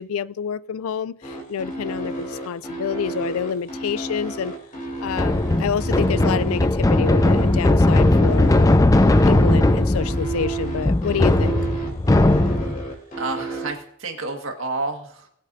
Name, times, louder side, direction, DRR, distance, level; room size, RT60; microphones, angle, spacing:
voice 1, 0.0-4.5 5.0-8.9 9.2-11.6, left 7 dB, 80° left, 0.4 m, -28 dB
sound 1, 1.2-13.7, right 4 dB, 40° left, 3.0 m, -31 dB
sound 2, 5.1-12.9, left 2 dB, 15° left, 0.4 m, -18 dB
voice 2, 13.2-15.3, right 3 dB, 65° right, 1.8 m, -30 dB
20.5 x 8.3 x 2.7 m
head